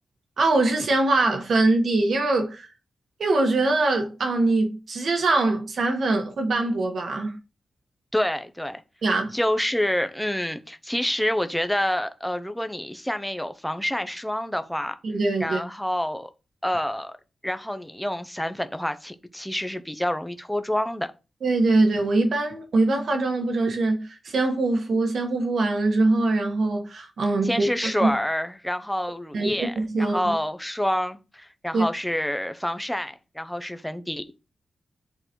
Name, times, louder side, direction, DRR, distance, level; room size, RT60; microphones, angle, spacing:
voice 1, 0.4-2.7 3.2-7.4 9.0-9.4 15.0-15.6 21.4-27.7 28.0-28.1 29.3-30.3 31.7-31.8, right 2 dB, 65° right, 1.4 m, -23 dB
voice 2, 8.1-8.8 9.3-14.9 15.4-16.3 16.6-17.2 17.4-21.1 27.4-34.2, left 1 dB, 5° left, 0.6 m, -27 dB
8.9 x 3.9 x 3.0 m
wide cardioid pair, 160°, 0 cm